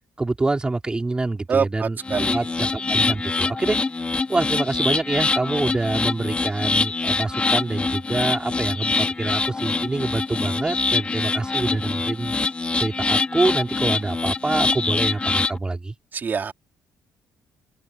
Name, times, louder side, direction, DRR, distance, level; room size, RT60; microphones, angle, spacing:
voice 1, 0.2-3.8 4.3-12.4 12.8-15.9, right 2 dB, 15° right, 4.8 m, -26 dB
voice 2, 1.5-2.4 16.1-16.5, right 6 dB, 35° right, 4.3 m, -25 dB
sound 1, 2.0-15.6, left 3 dB, 20° left, 2.9 m, -24 dB
cardioid pair, 135°, 6 cm